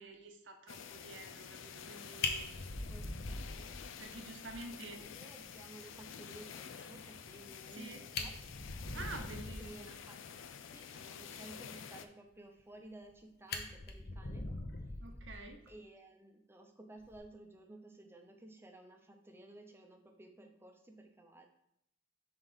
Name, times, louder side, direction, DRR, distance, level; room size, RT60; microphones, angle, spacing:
voice 1, 0.0-2.7 4.0-5.0 7.7-8.0 8.9-10.0 15.0-15.6, right 3 dB, 70° right, 5 dB, 0.8 m, -49 dB
sound 1, 0.7-12.1, left 7 dB, 90° left, 0.4 m, -50 dB
Fire, 1.9-2.0 2.2-4.1 4.5-4.6 5.0-5.1 5.4-5.5 7.7-7.8 8.0-9.8 12.6-13.1 13.5-15.7 17.0-17.2, left 3 dB, 60° left, 0.8 m, -41 dB
voice 2, 2.9-3.9 4.8-8.4 9.6-10.3 10.5-14.5 15.7-21.5, right 2 dB, 15° right, 3 dB, 0.7 m, -55 dB
4.7 x 3.8 x 5.6 m, 0.76 s
head